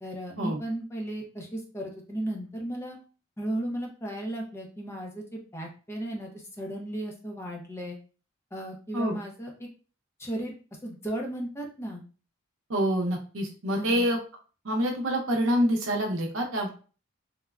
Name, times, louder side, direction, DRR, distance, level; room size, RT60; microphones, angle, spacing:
voice 1, 0.0-3.0 3.4-8.0 8.5-9.5 10.2-10.5 10.8-12.0 13.8-14.1, right 1 dB, 10° left, 0 dB, 0.5 m, -35 dB
voice 2, 12.7-14.2 14.6-16.7, equal, 65° right, 1 dB, 0.7 m, -26 dB
3.3 x 2.1 x 2.3 m, 0.36 s
head